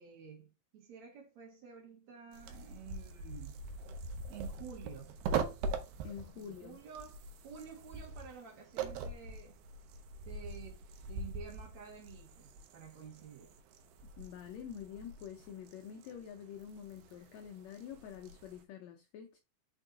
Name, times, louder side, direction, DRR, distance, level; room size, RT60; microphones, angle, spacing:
voice 1, 0.0-3.6 4.3-5.2 6.3-7.2 7.4-9.6 10.3-13.5, right 7 dB, 60° right, 2.6 m, -51 dB
sound 1, 2.3-18.6, right 4 dB, 85° right, 2.5 m, -43 dB
voice 2, 6.0-6.8 14.2-19.4, left 8 dB, 90° left, 1.5 m, -47 dB
5.4 x 4.5 x 3.8 m
omnidirectional pair, 3.9 m